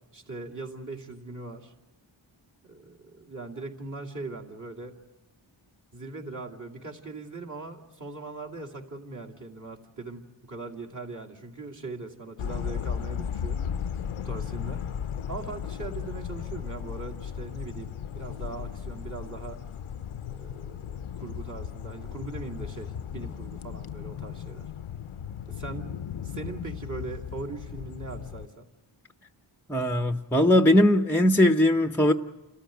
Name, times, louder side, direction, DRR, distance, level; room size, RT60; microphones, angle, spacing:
voice 1, 0.1-1.7 2.6-4.9 5.9-13.6 14.2-14.8 15.3-19.6 20.3-24.7 25.5-26.0 26.2-28.6, right 3 dB, 35° right, 2.6 m, -40 dB
sound 1, 12.4-28.5, left 8 dB, 85° left, 0.7 m, -36 dB
voice 2, 29.7-32.1, left 1 dB, 5° left, 0.7 m, -20 dB
29.5 x 14.0 x 9.2 m
wide cardioid pair, 75°, 49 cm